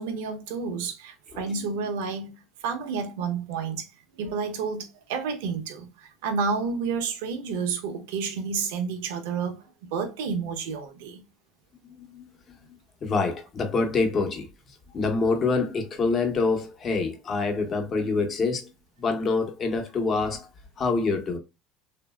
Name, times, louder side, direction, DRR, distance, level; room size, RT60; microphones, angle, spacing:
voice 1, 0.0-2.3 2.6-3.9 4.2-11.2, right 5 dB, 85° right, 0.7 m, -30 dB
voice 2, 11.8-12.6 13.0-14.5 14.9-18.7 19.0-20.5 20.8-21.4, left 4 dB, 40° left, 1.0 m, -26 dB
3.1 x 2.6 x 2.3 m
supercardioid pair, 100°, 0 cm